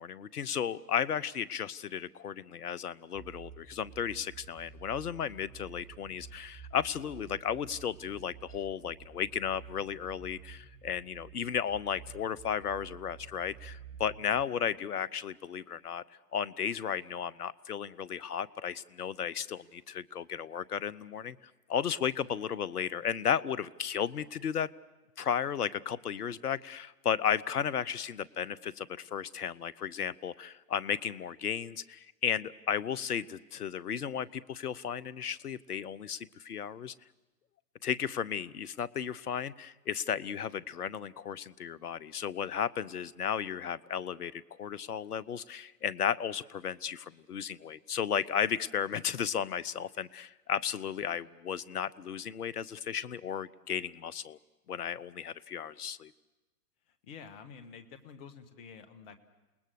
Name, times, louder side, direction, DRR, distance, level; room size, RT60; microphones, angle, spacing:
voice 1, 0.0-16.0 16.3-24.7 25.2-36.9 37.8-54.4 54.7-56.1, left 8 dB, 75° left, 18 dB, 0.8 m, -34 dB
sound 1, 3.1-14.4, right 7 dB, 25° right, 1.4 m, -51 dB
voice 2, 57.0-59.2, left 6 dB, 40° left, 8 dB, 1.8 m, -49 dB
29.0 x 19.5 x 6.5 m, 1.1 s
figure-of-eight pair, 110°, 46 cm